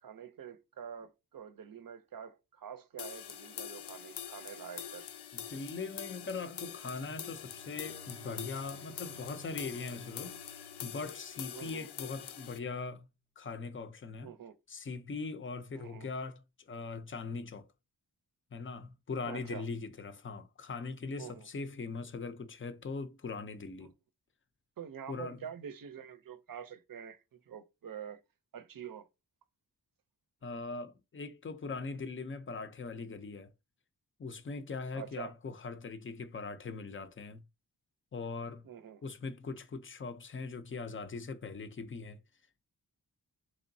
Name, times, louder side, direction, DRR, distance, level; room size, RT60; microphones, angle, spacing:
voice 1, 0.0-5.1 11.5-11.9 14.2-14.5 15.7-16.1 19.2-19.6 21.2-21.5 23.8-23.9 24.8-28.2 28.5-29.1 34.9-35.3 38.6-39.0, right 8 dB, 55° right, 0.6 m, -46 dB
sound 1, 3.0-12.6, left 9 dB, 80° left, 0.5 m, -45 dB
voice 2, 5.3-10.4 10.8-13.1 13.4-14.3 14.7-17.7 18.5-23.9 25.1-25.4 30.4-33.5 34.2-37.4 38.1-38.6 39.0-42.2, left 4 dB, 30° left, 0.5 m, -41 dB
Bowed string instrument, 7.4-12.0, right 2 dB, 5° left, 0.8 m, -57 dB
3.8 x 3.1 x 2.6 m
wide cardioid pair, 105°, 40 cm